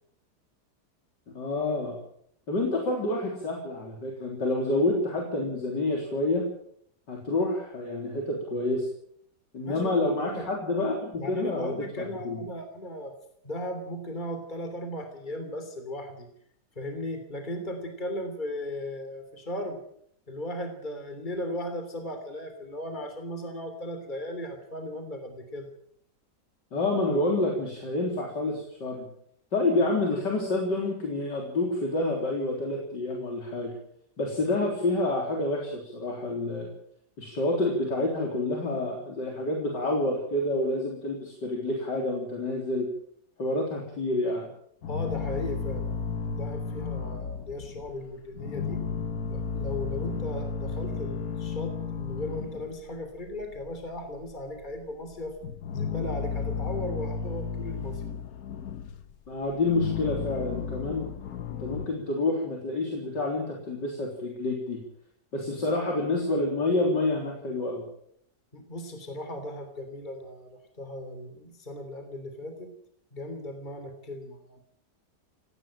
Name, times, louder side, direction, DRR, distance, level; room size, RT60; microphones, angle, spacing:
voice 1, 1.3-2.0 2.5-6.4 7.1-8.9 9.5-12.4 26.7-29.1 29.5-33.7 34.2-36.7 37.2-42.9 43.4-44.5 59.3-61.1 61.5-64.8 65.3-67.8, left 2 dB, 85° left, 0 dB, 4.4 m, -28 dB
voice 2, 9.7-10.5 11.1-13.1 13.4-16.3 16.8-19.8 20.3-25.7 44.9-48.8 49.3-55.3 55.7-58.0 68.5-72.7 73.1-74.6, left 1 dB, 25° left, 6 dB, 3.4 m, -37 dB
sound 1, 44.8-48.0 48.3-53.0 53.2-54.3 54.6-54.8 55.1-59.1 59.5-61.9, left 6 dB, 60° left, 1.5 m, -33 dB
19.0 x 16.5 x 8.9 m, 0.67 s
omnidirectional pair, 1.8 m